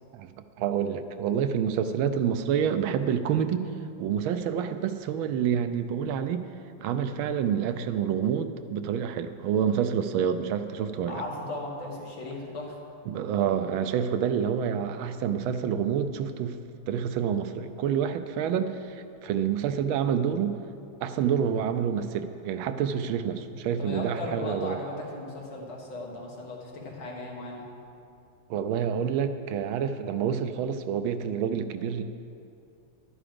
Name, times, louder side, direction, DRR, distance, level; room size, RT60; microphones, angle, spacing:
voice 1, 0.6-3.6 4.0-6.5 6.8-11.2 13.1-16.6 16.9-20.6 21.0-24.8 28.5-32.0, right 8 dB, 80° right, 10 dB, 1.4 m, -28 dB
voice 2, 11.1-12.8 23.8-27.7, left 2 dB, 70° left, -2 dB, 2.5 m, -37 dB
11.5 x 9.8 x 5.1 m, 2.6 s
omnidirectional pair, 2.3 m